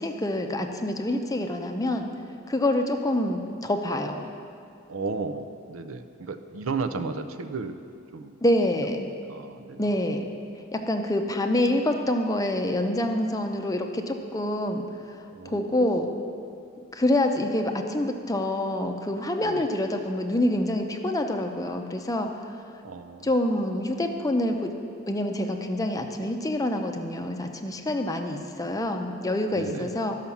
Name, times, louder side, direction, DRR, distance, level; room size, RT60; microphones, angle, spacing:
voice 1, 0.0-2.1 2.5-4.3 8.4-9.1 9.8-10.3 10.7-14.8 15.5-16.1 16.9-22.3 23.2-24.8 25.1-30.1, left 1 dB, 15° left, 5 dB, 0.6 m, -26 dB
voice 2, 4.9-7.8 8.1-8.3 9.3-9.9 15.3-15.7 19.4-19.7 22.8-23.3 29.5-29.9, right 4 dB, 85° right, 9 dB, 0.6 m, -34 dB
12.0 x 5.8 x 7.1 m, 2.4 s
head